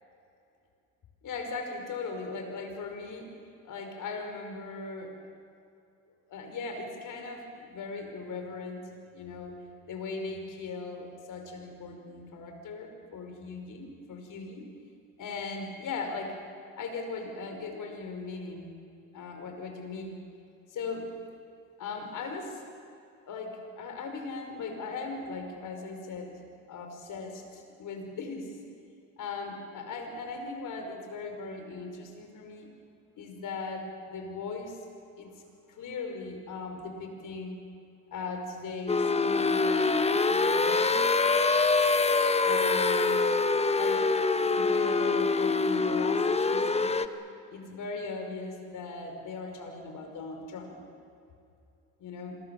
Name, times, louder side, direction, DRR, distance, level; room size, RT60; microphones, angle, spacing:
voice 1, 1.2-3.4 3.6-5.2 6.3-9.6 9.9-14.7 15.2-16.4 16.8-18.8 19.1-20.2 20.7-21.1 21.8-22.6 23.2-26.4 26.7-28.6 29.2-32.7 33.2-34.8 35.2-35.4 35.7-37.6 38.1-39.9 40.3-41.1 42.4-43.2 43.8-44.1 44.4-47.0 47.5-50.7 52.0-52.4, left 4 dB, 60° left, 4 dB, 5.3 m, -38 dB
sound 1, 38.9-47.1, left 3 dB, 20° left, 1.1 m, -25 dB
27.0 x 22.5 x 7.3 m, 2.5 s
cardioid pair, 85°, 35 cm